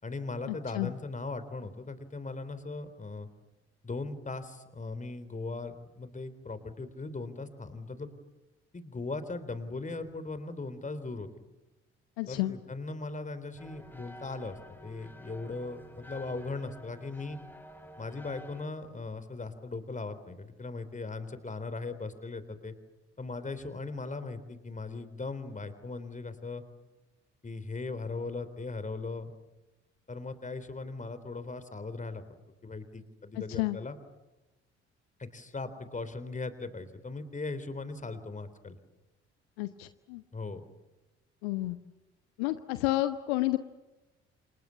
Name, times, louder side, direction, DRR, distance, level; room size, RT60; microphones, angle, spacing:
voice 1, 0.0-3.3 3.8-8.1 8.7-11.3 12.3-17.4 18.0-22.7 23.2-26.6 27.4-29.3 30.1-32.2 32.6-34.0 35.2-38.8 40.3-40.6, left 3 dB, 20° left, 12 dB, 3.7 m, -39 dB
voice 2, 12.2-12.5 33.5-33.8 39.6-40.2 41.4-41.8 42.4-43.6, left 17 dB, 65° left, 12 dB, 1.1 m, -30 dB
sound 1, 13.6-18.6, equal, 5° left, 4.3 m, -50 dB
30.0 x 28.0 x 7.1 m, 1.1 s
figure-of-eight pair, 50°, 33 cm